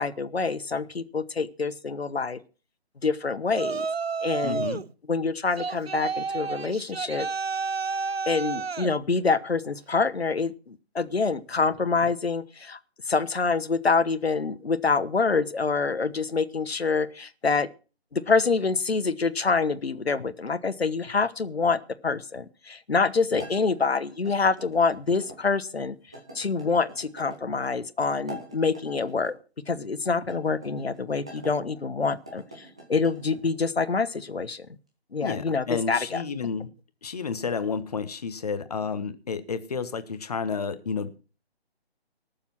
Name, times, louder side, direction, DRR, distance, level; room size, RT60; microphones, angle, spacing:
voice 1, 0.0-2.4 3.0-3.9 4.2-4.7 5.1-7.3 8.3-12.8 13.1-17.7 18.1-25.9 26.3-29.3 29.7-34.7 35.1-36.2, left 4 dB, 70° left, 15 dB, 1.2 m, -26 dB
Yell, 3.5-4.9 5.6-8.9, right 5 dB, 70° right, 0.8 m, -30 dB
voice 2, 4.4-4.8 23.3-23.5 35.2-36.7 37.0-41.2, left 5 dB, 35° left, 12 dB, 1.3 m, -31 dB
sound 1, 23.4-25.4 26.1-27.4 28.1-29.4 30.2-31.5 32.1-33.5, right 1 dB, 5° right, 0.6 m, -45 dB
18.5 x 7.2 x 6.0 m, 0.36 s
figure-of-eight pair, 150°, 32 cm